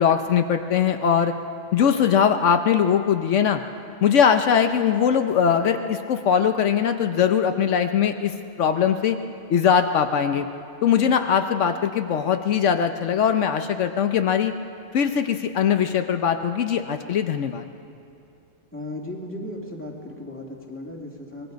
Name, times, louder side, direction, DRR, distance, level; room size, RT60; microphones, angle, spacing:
voice 1, 0.0-1.3 1.7-3.6 4.0-9.2 9.5-10.5 10.8-14.5 14.9-17.7, left 8 dB, 80° left, 7 dB, 1.1 m, -21 dB
voice 2, 18.7-21.5, left 1 dB, 10° left, -2 dB, 2.4 m, -36 dB
24.5 x 20.5 x 5.2 m, 2.6 s
omnidirectional pair, 1.3 m